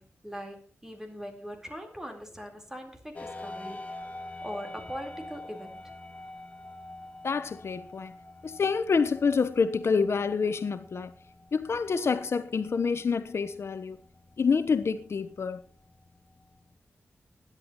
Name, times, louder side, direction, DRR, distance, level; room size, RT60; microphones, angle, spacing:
voice 1, 0.0-3.9 4.4-5.9, equal, 10° right, 4.0 m, -41 dB
sound 1, 3.1-16.8, left 2 dB, 30° left, 2.2 m, -47 dB
voice 2, 7.2-8.1 8.4-11.1 11.5-14.0 14.4-15.6, left 5 dB, 65° left, 1.0 m, -27 dB
21.0 x 11.0 x 3.0 m
wide cardioid pair, 115°, 5 cm